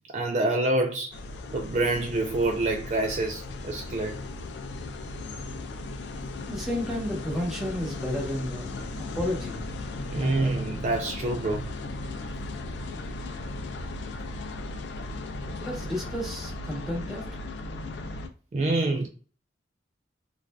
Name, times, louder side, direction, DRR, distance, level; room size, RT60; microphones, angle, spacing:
voice 1, 0.1-1.2 1.5-4.2 10.1-11.7 18.5-19.1, right 2 dB, 40° right, 0.3 m, -27 dB
sound 1, 1.1-18.3, left 2 dB, 80° left, 0.4 m, -37 dB
voice 2, 6.5-9.6 10.1-10.5 15.6-17.5, left 1 dB, ahead, 0.9 m, -32 dB
3.2 x 2.5 x 2.2 m
head